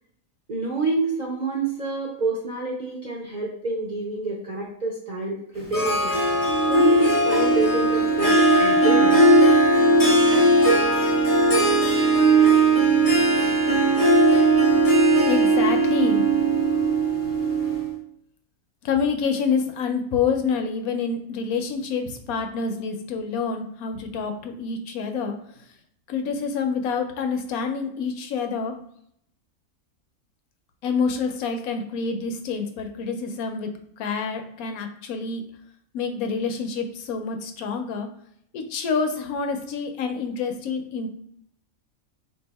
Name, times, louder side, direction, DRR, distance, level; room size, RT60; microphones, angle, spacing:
voice 1, 0.5-6.2 6.7-9.2, right 3 dB, 50° right, -3 dB, 0.5 m, -27 dB
Harp, 5.7-17.9, right 2 dB, 20° left, 0.5 m, -18 dB
voice 2, 15.3-16.2 18.8-25.4 26.1-28.7 30.8-33.7 34.0-35.4 35.9-38.1 38.5-41.1, left 5 dB, 80° left, 6 dB, 1.0 m, -27 dB
2.7 x 2.4 x 4.0 m, 0.70 s
omnidirectional pair, 1.5 m